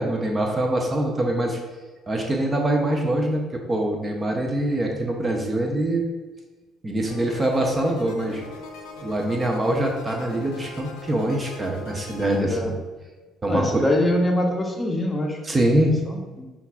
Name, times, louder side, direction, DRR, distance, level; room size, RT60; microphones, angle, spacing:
voice 1, 0.0-1.6 2.1-6.1 6.8-8.4 9.0-12.7 13.4-13.9 15.4-16.0, right 1 dB, 25° right, 1 dB, 0.6 m, -24 dB
sound 1, 7.1-12.4, left 3 dB, 85° left, 0.5 m, -41 dB
voice 2, 12.4-12.7 13.5-15.7 16.1-16.5, left 1 dB, 20° left, 1 dB, 0.6 m, -24 dB
5.3 x 2.4 x 2.3 m, 1.3 s
supercardioid pair, 75°, 0 cm